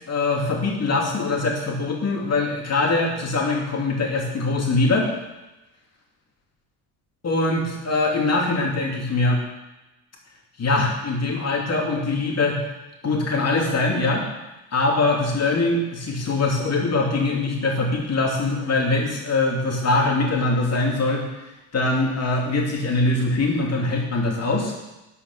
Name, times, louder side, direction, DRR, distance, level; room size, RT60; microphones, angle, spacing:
voice 1, 0.1-5.1 7.2-9.4 10.6-12.6 13.0-14.2 14.7-24.7, left 2 dB, 35° left, -1 dB, 2.8 m, -22 dB
11.0 x 5.8 x 6.2 m, 1.0 s
supercardioid pair, 100°, 44 cm